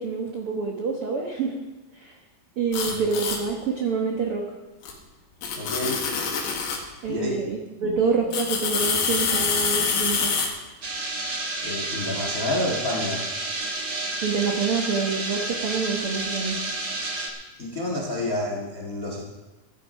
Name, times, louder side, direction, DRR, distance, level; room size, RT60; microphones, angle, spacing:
voice 1, 0.0-1.5 1.9-2.1 2.6-4.4 7.0-10.3 14.2-16.6, right 5 dB, 75° right, 0 dB, 1.3 m, -27 dB
sound 1, 2.7-3.4 4.8-4.9 5.4-6.8 8.3-10.5, left 5 dB, 80° left, 3.8 m, -25 dB
voice 2, 5.5-6.1 7.1-7.4 7.8-8.0 11.6-13.2 17.6-19.2, left 1 dB, 50° left, -1 dB, 1.0 m, -29 dB
sound 2, 10.8-17.3, right 2 dB, 50° right, 1.2 m, -30 dB
14.0 x 11.0 x 5.2 m, 1.1 s
omnidirectional pair, 4.5 m